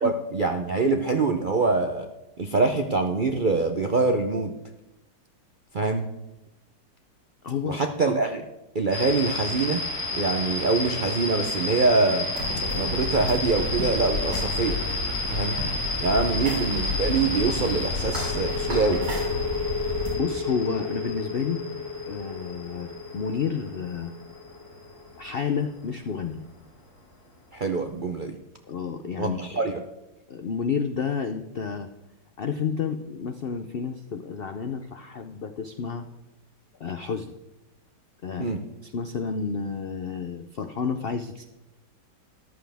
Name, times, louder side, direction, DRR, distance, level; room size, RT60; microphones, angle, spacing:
voice 1, 0.0-2.1 2.4-4.5 5.7-6.1 7.7-8.4 8.7-9.8 10.1-12.3 12.7-14.8 15.3-15.6 16.0-19.0 27.5-28.4 29.2-29.8 38.4-38.6, right 3 dB, 60° right, 4 dB, 0.5 m, -24 dB
voice 2, 7.4-7.8 20.2-24.1 25.2-26.4 28.7-29.6 30.3-31.9 32.4-36.1 36.8-37.3 38.2-38.6 38.8-41.4, left 6 dB, 80° left, 7 dB, 0.5 m, -30 dB
sound 1, 8.9-25.6, left 2 dB, 60° left, 2.3 m, -32 dB
sound 2, 12.3-20.1, left 2 dB, 90° right, 3.9 m, -31 dB
sound 3, 17.9-25.4, left 4 dB, 10° left, 1.3 m, -33 dB
14.0 x 11.5 x 3.5 m, 0.97 s
omnidirectional pair, 1.9 m